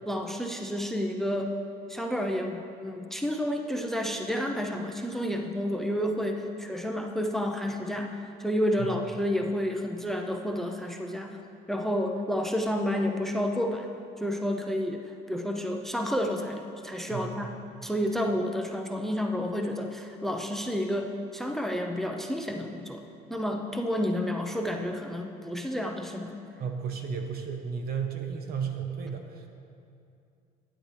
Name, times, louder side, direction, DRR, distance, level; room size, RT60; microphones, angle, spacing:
voice 1, 0.1-1.5 1.9-11.4 11.7-13.9 14.2-17.5 17.8-23.0 23.3-26.4, equal, ahead, 3 dB, 0.6 m, -30 dB
voice 2, 17.1-17.5 26.6-29.5, right 6 dB, 65° right, 4 dB, 1.1 m, -34 dB
12.0 x 8.8 x 3.2 m, 2.5 s
cardioid pair, 110°, 17 cm